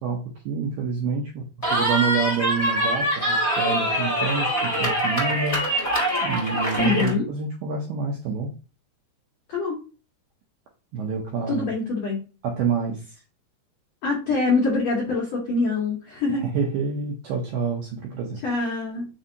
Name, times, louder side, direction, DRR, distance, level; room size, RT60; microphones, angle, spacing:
voice 1, 0.0-5.6 6.2-8.5 10.9-11.7 12.4-13.2 16.3-18.4, right 5 dB, 80° right, 0 dB, 2.0 m, -28 dB
Cheering, 1.6-7.1, right 1 dB, 25° left, 0.7 m, -24 dB
voice 2, 6.8-7.2 9.5-9.8 11.5-12.2 14.0-16.4 18.4-19.1, left 3 dB, 90° left, -4 dB, 1.4 m, -24 dB
6.2 x 2.6 x 2.7 m, 0.33 s
omnidirectional pair, 4.9 m